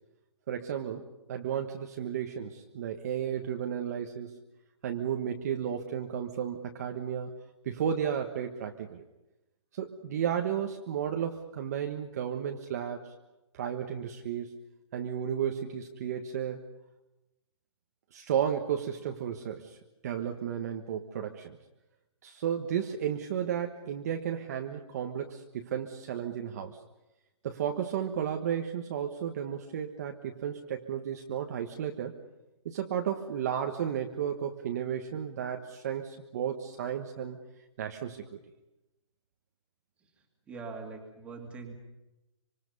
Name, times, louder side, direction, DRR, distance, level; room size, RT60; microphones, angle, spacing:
voice 1, 0.5-4.4 4.8-7.3 7.6-9.0 9.7-13.1 13.5-14.6 14.9-16.6 18.1-19.8 20.0-21.6 22.2-26.8 27.4-32.2 32.6-37.4 37.8-38.4, right 9 dB, 30° right, 3 dB, 1.4 m, -33 dB
voice 2, 40.0-41.7, right 4 dB, 5° right, 2 dB, 2.5 m, -43 dB
26.0 x 26.0 x 5.5 m, 0.94 s
hypercardioid pair, 175°, 16 cm